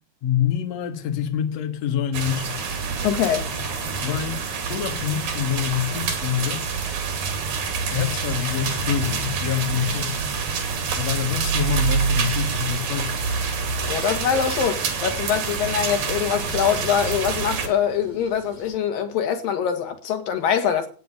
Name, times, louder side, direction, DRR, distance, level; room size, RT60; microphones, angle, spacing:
voice 1, 0.2-2.6 4.0-4.4 4.7-6.6 7.9-10.2 11.0-13.3, left 9 dB, 55° left, 2.6 m, -26 dB
sound 1, 2.1-17.7, right 5 dB, 85° right, 4.4 m, -27 dB
sound 2, 2.6-18.8, right 2 dB, 30° left, 8.1 m, -45 dB
voice 2, 3.0-3.5 13.9-20.9, left 8 dB, 85° left, 3.5 m, -23 dB
15.0 x 9.2 x 6.7 m
omnidirectional pair, 3.9 m